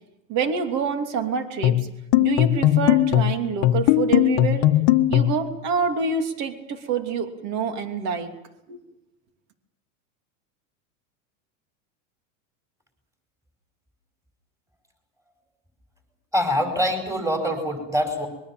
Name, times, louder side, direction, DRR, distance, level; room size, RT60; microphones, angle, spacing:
voice 1, 0.3-1.9 2.2-4.7 5.1-8.3 8.7-8.8, right 5 dB, 45° right, 6 dB, 2.9 m, -26 dB
sound 1, 1.6-5.5, left 14 dB, 45° left, 1.3 m, -19 dB
voice 2, 16.3-18.3, equal, 10° right, 5 dB, 5.1 m, -24 dB
24.5 x 22.5 x 7.5 m, 0.91 s
supercardioid pair, 150°, 38 cm